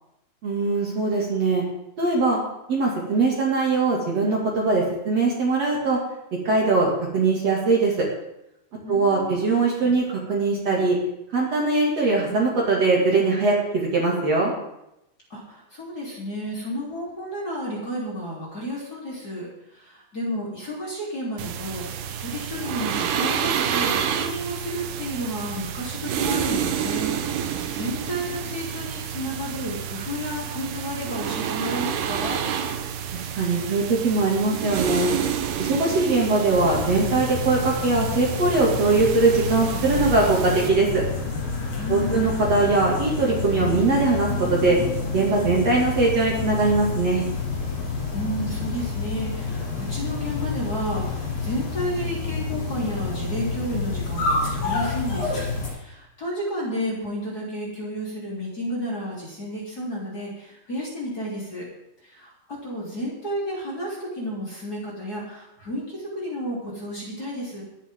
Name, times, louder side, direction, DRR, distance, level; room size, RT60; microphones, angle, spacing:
voice 1, 0.4-1.6 2.0-2.4 2.7-6.0 6.4-8.0 8.9-11.0 11.3-14.5 33.1-35.1 35.6-41.0 41.9-44.8 45.1-47.2, right 3 dB, 45° right, -3 dB, 3.2 m, -21 dB
voice 2, 8.8-9.5 9.8-10.0 15.3-32.4 41.8-42.4 48.1-61.7 62.0-67.6, equal, 25° left, -5 dB, 3.8 m, -32 dB
sound 1, 21.4-40.7, right 8 dB, 85° right, 3.1 m, -29 dB
sound 2, 36.5-55.7, left 4 dB, 60° left, 8.3 m, -29 dB
21.5 x 10.5 x 3.8 m, 0.86 s
omnidirectional pair, 4.5 m